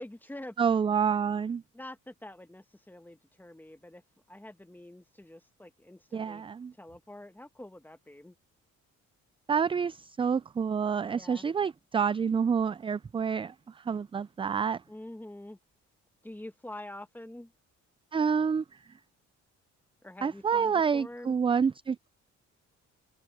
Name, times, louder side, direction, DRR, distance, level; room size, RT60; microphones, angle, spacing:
voice 1, 0.0-0.5 1.7-4.0 4.3-6.4 6.8-8.3 11.1-11.4 14.9-15.6 16.2-17.5 20.0-21.3, left 1 dB, 5° left, 1.2 m, -46 dB
voice 2, 0.6-1.6 6.1-6.7 9.5-14.8 18.1-18.8 20.2-22.1, right 6 dB, 20° right, 0.3 m, -28 dB
cardioid pair, 90°, 30 cm